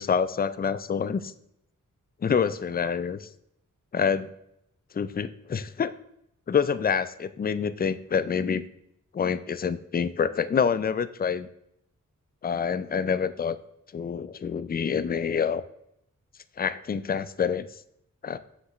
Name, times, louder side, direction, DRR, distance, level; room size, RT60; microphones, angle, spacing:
voice 1, 0.0-1.3 2.2-3.3 3.9-4.3 4.9-5.9 6.5-8.6 9.1-11.5 12.4-13.6 13.9-15.6 16.6-17.7 18.2-18.4, left 6 dB, 30° left, 14 dB, 0.4 m, -27 dB
7.2 x 6.6 x 3.1 m, 0.78 s
wide cardioid pair, 75°, 32 cm